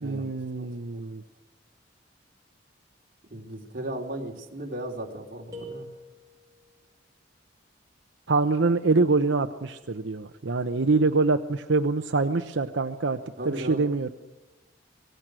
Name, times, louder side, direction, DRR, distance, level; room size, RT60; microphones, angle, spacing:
voice 1, 0.0-1.2 8.3-13.2 13.4-14.1, right 3 dB, 80° right, 7 dB, 0.8 m, -25 dB
voice 2, 0.6-1.1 3.3-5.9 13.4-13.9, right 1 dB, 50° right, 1 dB, 3.2 m, -36 dB
sound 1, 5.5-6.7, equal, 20° right, 5.5 m, -43 dB
25.5 x 18.5 x 6.3 m, 1.1 s
head